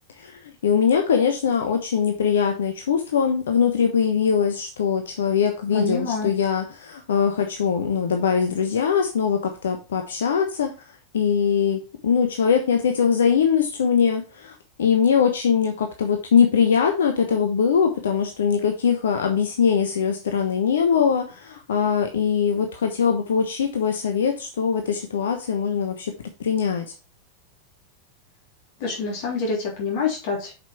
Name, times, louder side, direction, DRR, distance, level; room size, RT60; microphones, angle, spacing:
voice 1, 0.2-10.7 11.1-26.1 26.4-26.9, left 7 dB, 65° left, 5 dB, 1.0 m, -22 dB
voice 2, 5.7-6.3 28.8-30.5, left 4 dB, 50° left, -1 dB, 3.4 m, -26 dB
7.3 x 5.4 x 4.6 m, 0.31 s
figure-of-eight pair, 90°, 0 cm